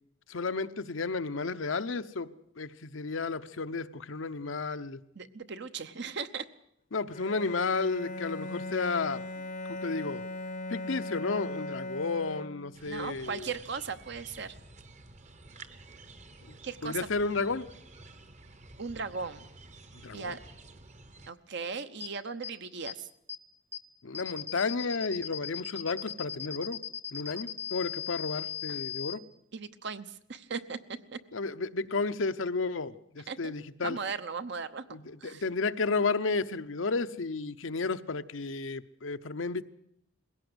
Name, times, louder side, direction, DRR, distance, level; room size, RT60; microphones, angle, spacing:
voice 1, 0.3-2.3 2.6-5.0 6.9-9.2 9.7-10.2 10.7-13.5 16.5-16.6 16.8-17.6 20.0-20.4 24.0-26.8 27.1-29.2 31.3-34.0 34.9-39.6, left 4 dB, 75° left, 11 dB, 0.8 m, -32 dB
voice 2, 5.1-6.4 12.9-14.5 16.6-17.1 18.8-19.5 20.1-20.4 21.3-23.1 28.7-28.8 29.5-31.2 33.3-33.5 33.8-35.4, right 5 dB, 60° right, 11 dB, 1.0 m, -38 dB
Bowed string instrument, 7.1-12.9, left 2 dB, 40° left, 0.8 m, -39 dB
sound 1, 12.7-21.3, right 3 dB, 35° right, 1.1 m, -51 dB
sound 2, 22.0-22.1 22.4-22.5 22.9-23.0 23.3-23.4 23.7-23.8 24.1-29.1, left 9 dB, 15° right, 0.9 m, -37 dB
21.0 x 17.0 x 7.9 m, 0.76 s
head